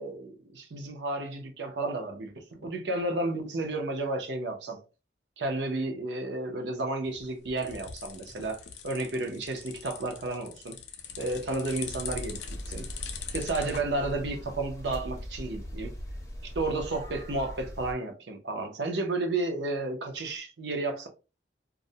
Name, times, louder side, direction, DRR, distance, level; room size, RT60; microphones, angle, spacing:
voice 1, 0.0-4.8 5.4-10.8 11.2-12.4 12.7-12.9 13.3-15.9 16.5-21.1, right 2 dB, 80° right, 0.6 m, -32 dB
sound 1, 7.0-13.8, left 7 dB, 80° left, 0.4 m, -42 dB
sound 2, 11.9-17.9, equal, 20° left, 0.5 m, -40 dB
2.4 x 2.0 x 2.6 m
head